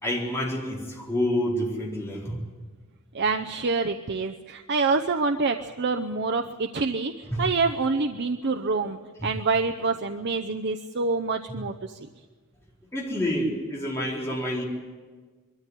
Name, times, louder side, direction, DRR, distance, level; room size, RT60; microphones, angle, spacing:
voice 1, 0.0-2.4 7.3-7.5 8.7-8.8 12.9-14.6, equal, 10° left, -4 dB, 4.2 m, -28 dB
voice 2, 3.1-12.1, right 4 dB, 50° right, 5 dB, 0.7 m, -27 dB
22.5 x 13.5 x 9.8 m, 1.4 s
head